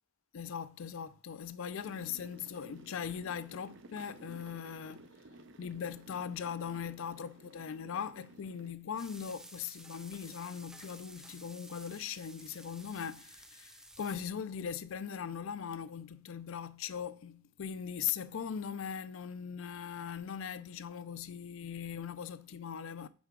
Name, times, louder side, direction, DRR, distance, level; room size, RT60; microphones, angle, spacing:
voice 1, 0.3-5.1 5.6-23.1, left 7 dB, 75° left, 0.4 m, -40 dB
sound 1, 1.8-8.7, right 2 dB, 65° right, 0.6 m, -55 dB
sound 2, 9.0-14.3, right 1 dB, 5° right, 0.4 m, -53 dB
6.0 x 4.6 x 3.7 m
head